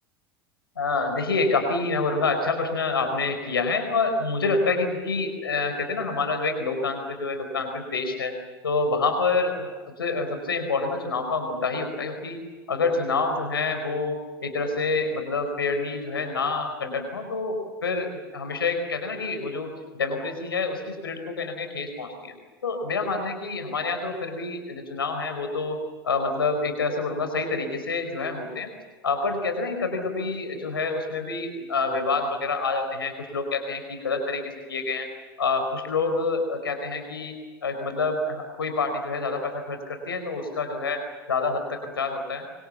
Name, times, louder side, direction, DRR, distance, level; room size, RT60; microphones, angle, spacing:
voice 1, 0.8-8.3 8.6-9.7 10.0-12.4 12.7-22.3 22.6-25.8 26.0-28.7 29.0-35.1 35.4-37.3 37.6-41.0 41.3-42.4, left 3 dB, 85° left, 6 dB, 4.5 m, -27 dB
25.5 x 25.0 x 7.2 m, 1.4 s
hypercardioid pair, 85°, 12 cm